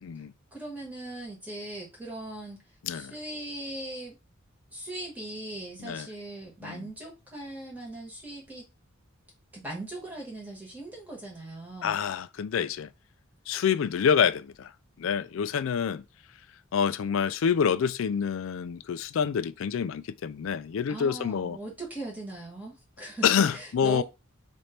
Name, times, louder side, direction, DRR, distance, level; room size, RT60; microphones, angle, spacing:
voice 1, 0.0-0.3 2.8-3.1 5.8-6.1 6.6-6.9 11.8-12.9 13.5-14.7 15.0-16.0 16.7-21.6 23.2-24.0, left 7 dB, 70° left, 0.3 m, -27 dB
voice 2, 0.5-4.2 4.7-8.7 9.5-12.0 20.9-24.0, right 1 dB, 10° right, 1.6 m, -39 dB
3.2 x 2.6 x 4.4 m
head